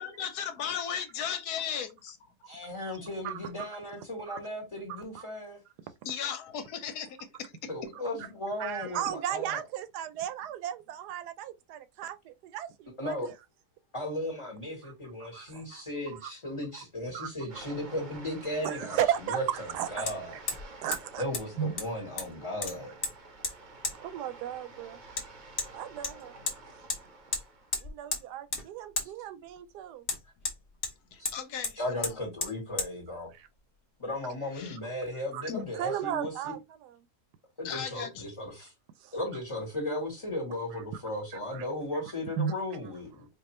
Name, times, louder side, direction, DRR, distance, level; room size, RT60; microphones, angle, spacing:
voice 1, 0.0-2.2 6.0-7.9 31.1-32.1 34.6-34.8 35.5-35.7 37.6-38.2, left 8 dB, 80° left, 1.3 m, -36 dB
voice 2, 2.5-5.6 7.7-9.6 13.0-13.3 13.9-19.0 19.2-20.4 21.2-22.9 29.0-29.1 31.2-31.3 31.7-33.3 34.0-36.5 37.6-38.7 39.1-43.3, left 1 dB, 20° left, 1.3 m, -36 dB
voice 3, 8.6-13.3 14.8-14.9 15.2-15.8 16.1-16.3 17.1-17.3 18.6-20.0 20.8-21.2 21.6-21.7 24.0-25.0 25.7-26.3 27.8-30.1 33.3-33.5 35.3-35.5 35.7-37.0 39.0-39.1 41.3-41.6 42.4-42.5, right 10 dB, 85° right, 1.2 m, -35 dB
sound 1, 17.5-27.8, right 3 dB, 40° right, 0.7 m, -49 dB
Hammer, 18.1-18.2 20.1-20.2 20.5-20.7 20.9-21.0 21.3-21.4 21.8-22.3 22.6-23.1 23.4-23.5 23.8-24.0 25.2-25.3 25.6-25.7 26.0-26.6 26.9-27.0 27.3-27.4 27.7-28.2 28.5-28.7 29.0-29.1 30.1-30.9 31.3-31.4 31.6-31.7 32.0-32.1 32.4-32.5 32.8-32.9, left 4 dB, 40° left, 1.0 m, -33 dB
4.6 x 2.6 x 3.0 m
omnidirectional pair, 1.7 m